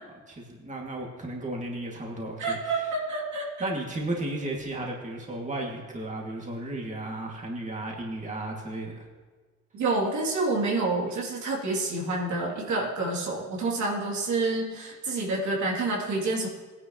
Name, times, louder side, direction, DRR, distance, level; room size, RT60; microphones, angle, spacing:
voice 1, 0.3-2.9 3.6-9.1, right 1 dB, 25° right, -1 dB, 2.4 m, -34 dB
voice 2, 2.4-3.7 9.7-16.5, right 3 dB, 70° right, -3 dB, 3.0 m, -28 dB
17.0 x 10.5 x 3.1 m, 1.4 s
cardioid pair, 90°, 30 cm